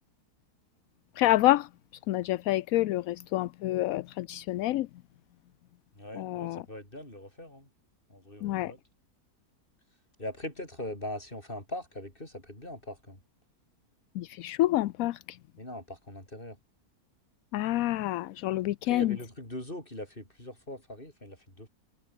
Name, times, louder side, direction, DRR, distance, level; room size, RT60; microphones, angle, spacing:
voice 1, 1.2-1.7 2.1-4.9 6.1-6.6 8.4-8.7 14.1-15.4 17.5-19.2, left 15 dB, 70° left, 0.9 m, -28 dB
voice 2, 5.9-7.7 8.1-8.8 10.2-13.2 15.6-16.6 18.8-21.7, left 1 dB, 35° left, 7.9 m, -41 dB
omnidirectional pair, 1.6 m